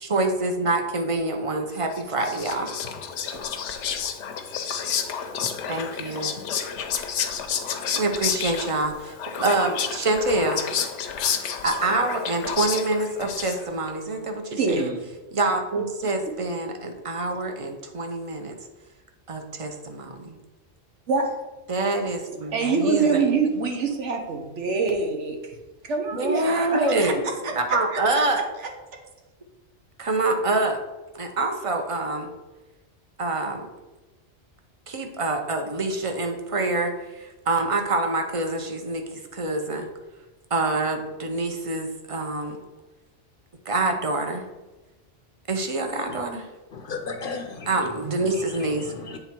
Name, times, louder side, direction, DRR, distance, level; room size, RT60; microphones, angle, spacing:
voice 1, 0.0-2.8 5.7-6.3 7.7-10.6 11.6-14.9 15.3-18.6 19.3-20.4 21.7-23.3 26.1-27.2 27.5-28.4 30.0-30.8 31.1-32.3 33.2-33.7 34.9-39.0 39.3-39.9 40.5-42.6 43.7-44.4 45.5-46.4 47.7-48.8, right 2 dB, 35° right, 4 dB, 0.7 m, -26 dB
Whispering, 1.9-13.9, left 7 dB, 80° left, 0.9 m, -30 dB
voice 2, 14.6-15.0 21.1-21.4 22.5-25.6 25.8-27.1 27.4-27.5 27.9-28.0 28.3-28.7, right 4 dB, 80° right, 2 dB, 1.3 m, -25 dB
voice 3, 46.7-49.2, left 4 dB, 55° left, 6 dB, 0.7 m, -36 dB
7.9 x 3.4 x 4.4 m, 1.1 s
omnidirectional pair, 1.2 m